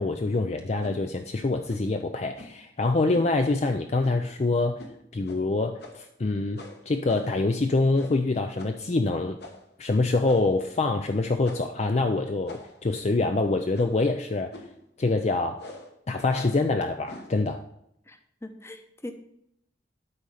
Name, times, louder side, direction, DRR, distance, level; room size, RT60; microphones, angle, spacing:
voice 1, 0.0-4.8 5.1-9.4 9.8-14.6 15.0-15.6 16.1-17.6, left 3 dB, 35° left, 6 dB, 0.5 m, -25 dB
sound 1, 0.8-1.0 1.7-1.9 2.4-2.7 3.1-3.3 4.0-4.3 4.8-5.0 5.3-5.4 5.8-6.1 6.6-7.4 7.9-8.3 8.6-8.8 9.4-9.7 10.3-10.6 11.4-11.8 12.5-12.9 13.7-14.1 14.5-14.8 15.6-15.9 16.3-16.7 17.1-17.4, left 1 dB, 65° left, 1.4 m, -44 dB
voice 2, 18.1-19.1, left 1 dB, 15° left, 6 dB, 0.9 m, -41 dB
12.0 x 4.1 x 4.9 m, 0.76 s
head